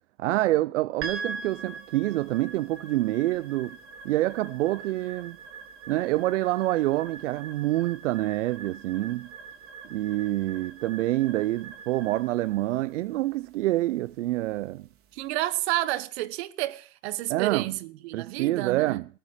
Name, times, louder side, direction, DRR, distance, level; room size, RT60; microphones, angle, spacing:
voice 1, 0.2-3.8 4.0-5.4 5.9-9.3 9.9-14.9 17.3-17.7 18.1-19.0, right 16 dB, 75° right, 0.6 m, -27 dB
sound 1, 1.0-15.4, right 4 dB, 35° right, 3.2 m, -43 dB
voice 2, 15.1-19.0, right 16 dB, 60° right, 1.3 m, -30 dB
18.5 x 6.7 x 7.3 m
hypercardioid pair, 115°, 37 cm